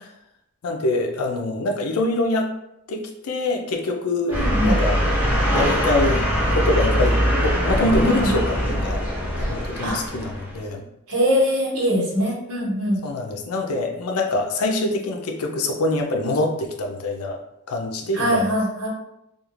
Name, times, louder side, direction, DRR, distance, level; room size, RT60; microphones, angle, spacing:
voice 1, 0.6-2.5 2.9-5.0 5.5-9.0 9.4-10.8 13.0-17.4 17.7-18.5, left 2 dB, 85° left, 3 dB, 0.5 m, -24 dB
sound 1, 4.3-10.6, equal, 10° right, 0.7 m, -22 dB
voice 2, 4.3-4.8 7.9-8.3 9.8-10.0 11.1-13.0 18.1-18.9, equal, 85° right, -5 dB, 1.2 m, -22 dB
2.4 x 2.4 x 3.0 m, 0.82 s
head